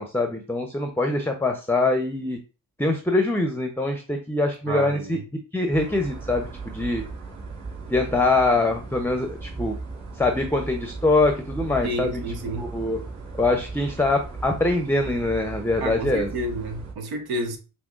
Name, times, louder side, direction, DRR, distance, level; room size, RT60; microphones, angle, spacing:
voice 1, 0.0-2.4 2.8-5.2 5.5-7.0 7.9-9.8 10.2-12.2 12.6-13.0 13.4-16.3, left 2 dB, 5° left, 0.6 m, -23 dB
voice 2, 4.7-5.2 11.8-12.7 15.8-17.6, right 1 dB, 80° right, 0.8 m, -30 dB
sound 1, 5.7-16.9, right 3 dB, 45° right, 1.6 m, -37 dB
5.8 x 2.0 x 2.4 m
supercardioid pair, 45°, 37 cm